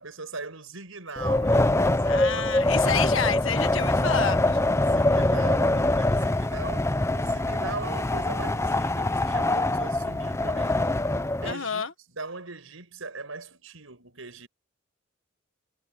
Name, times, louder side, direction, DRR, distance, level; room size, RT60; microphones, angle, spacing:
voice 1, 0.0-2.5 2.8-2.9 4.7-11.0 11.4-14.5, right 3 dB, 75° right, 6.7 m, -39 dB
Wind, 1.2-11.5, left 2 dB, 15° left, 0.7 m, -24 dB
voice 2, 2.1-4.6 11.4-11.9, left 6 dB, 70° left, 1.7 m, -29 dB
head